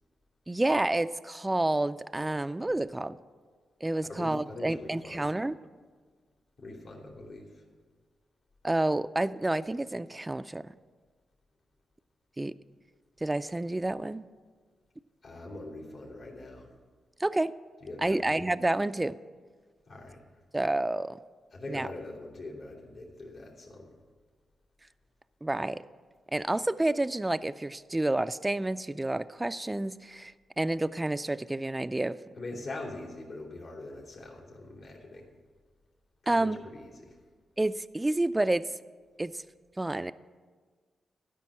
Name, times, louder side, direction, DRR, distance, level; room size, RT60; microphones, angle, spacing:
voice 1, 0.5-3.2 3.8-5.6 8.6-10.6 12.4-12.5 13.2-14.2 17.2-17.5 18.0-19.2 20.5-21.2 21.7-21.9 25.4-25.8 26.3-32.2 36.3-36.6 37.6-38.6 39.2-39.4 39.8-40.1, right 2 dB, 20° right, 12 dB, 0.3 m, -29 dB
voice 2, 4.0-5.3 6.6-7.5 15.2-16.7 17.8-18.5 19.9-20.2 21.5-23.9 32.4-35.3 36.3-37.2, left 2 dB, 75° left, -7 dB, 3.0 m, -43 dB
12.0 x 5.3 x 8.6 m, 1.5 s
supercardioid pair, 50°, 0 cm